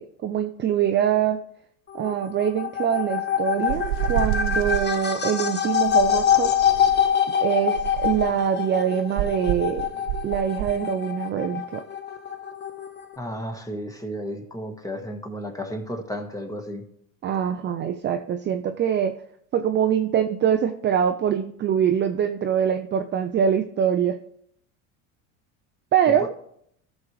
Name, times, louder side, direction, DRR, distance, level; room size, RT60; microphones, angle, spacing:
voice 1, 0.0-1.4 1.9-6.5 7.4-9.9 10.2-11.8 17.2-19.1 19.5-24.2 25.9-26.3, right 9 dB, 30° right, 7 dB, 0.5 m, -24 dB
sound 1, 1.9-13.2, left 9 dB, 25° left, 0.9 m, -25 dB
sound 2, 3.7-4.9 5.8-7.1 7.7-8.4 9.2-10.8, right 14 dB, 60° right, 0.8 m, -29 dB
voice 2, 13.2-16.9 26.1-26.3, equal, 10° left, 5 dB, 1.4 m, -33 dB
14.5 x 6.3 x 3.2 m, 0.68 s
supercardioid pair, 105°, 40 cm